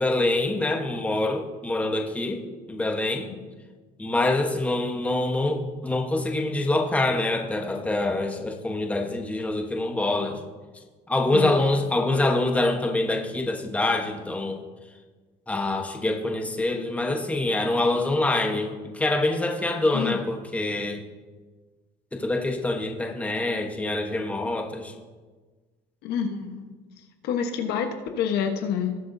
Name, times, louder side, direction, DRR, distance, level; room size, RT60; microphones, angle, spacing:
voice 1, 0.0-2.4 2.7-3.3 4.0-10.4 11.1-14.6 15.5-21.0 22.1-24.9, left 2 dB, 10° left, 3 dB, 1.1 m, -25 dB
voice 2, 11.3-11.6 19.9-20.2 26.0-26.7 27.2-29.0, left 7 dB, 75° left, 5 dB, 1.2 m, -28 dB
19.5 x 7.9 x 2.7 m, 1.3 s
cardioid pair, 130°, 17 cm